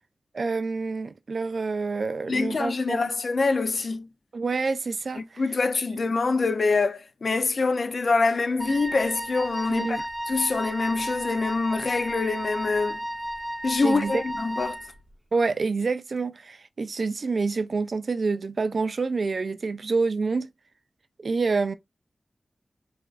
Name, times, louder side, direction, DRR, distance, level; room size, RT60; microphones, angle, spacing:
voice 1, 0.3-3.1 4.3-5.4 9.7-10.0 13.8-14.2 15.3-20.5 21.2-21.7, right 4 dB, 70° right, 0.4 m, -27 dB
voice 2, 2.3-4.1 5.2-10.0 10.3-13.0 13.6-14.8, left 3 dB, 65° left, 0.5 m, -25 dB
Wind instrument woodwind instrument, 8.6-14.9, equal, 10° right, 0.8 m, -33 dB
4.7 x 2.4 x 2.4 m
wide cardioid pair, 70°, 0 cm